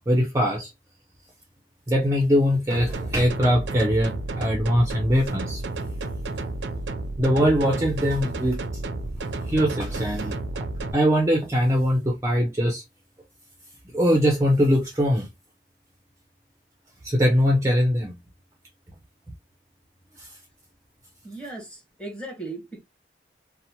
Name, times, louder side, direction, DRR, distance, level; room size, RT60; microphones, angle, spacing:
voice 1, 0.1-0.7 1.9-5.6 7.2-8.6 9.5-10.3 10.9-12.8 13.9-15.3 17.0-18.1 20.2-20.3, equal, 15° right, 0.5 m, -21 dB
sound 1, 2.7-10.9, right 2 dB, 90° right, 0.4 m, -31 dB
voice 2, 21.2-22.8, right 2 dB, 5° left, 1.0 m, -37 dB
2.8 x 2.0 x 2.7 m
head